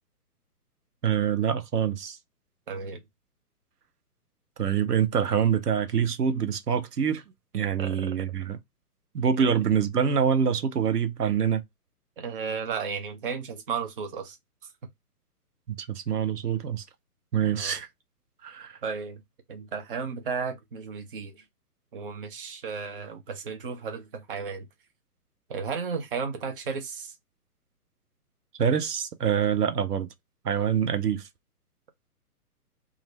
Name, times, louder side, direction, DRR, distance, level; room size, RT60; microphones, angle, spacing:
voice 1, 1.0-2.2 4.6-7.2 7.5-8.6 9.1-11.6 15.7-16.8 17.3-17.9 18.4-18.8 28.6-30.1 30.4-31.3, right 7 dB, 85° right, 0.6 m, -25 dB
voice 2, 2.7-3.0 7.8-8.2 9.4-9.6 12.2-14.4 17.5-17.8 18.8-19.2 19.5-21.4 21.9-24.7 25.5-27.1, right 5 dB, 35° right, 0.6 m, -34 dB
2.5 x 2.1 x 2.9 m
figure-of-eight pair, 130°, 46 cm